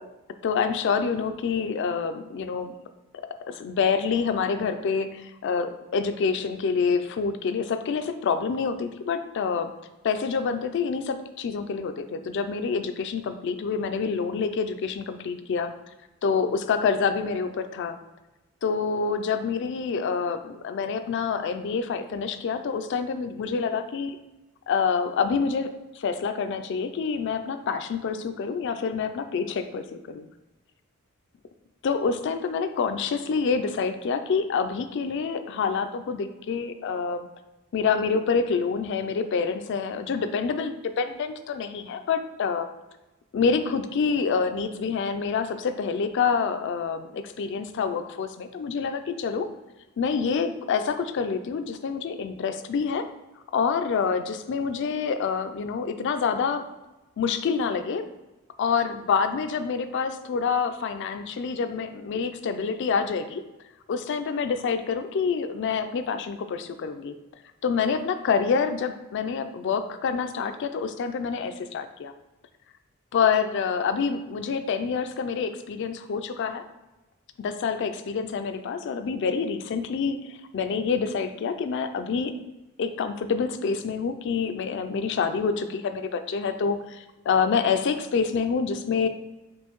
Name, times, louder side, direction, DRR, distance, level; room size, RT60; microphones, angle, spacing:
voice 1, 0.4-2.7 3.5-9.7 10.0-15.7 16.2-18.0 18.6-24.2 24.7-25.7 26.0-30.3 31.8-37.3 37.7-42.7 43.3-49.5 50.0-53.1 53.5-56.6 57.2-58.0 58.6-63.4 63.9-67.1 67.6-72.1 73.1-76.6 77.4-82.3 82.8-89.1, left 5 dB, 55° left, 9 dB, 0.3 m, -27 dB
5.4 x 2.6 x 3.0 m, 1.0 s
head